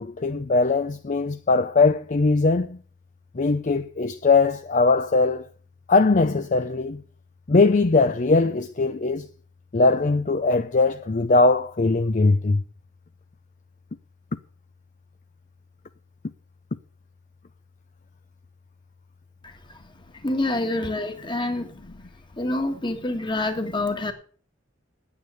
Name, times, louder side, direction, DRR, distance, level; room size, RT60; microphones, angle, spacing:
voice 1, 0.0-2.8 3.3-5.5 5.9-7.0 7.5-9.3 9.7-12.6, left 3 dB, 40° left, 0.6 m, -20 dB
voice 2, 19.4-19.8 20.2-21.7 22.4-24.1, left 2 dB, 25° left, 1.8 m, -27 dB
9.6 x 8.8 x 8.3 m
head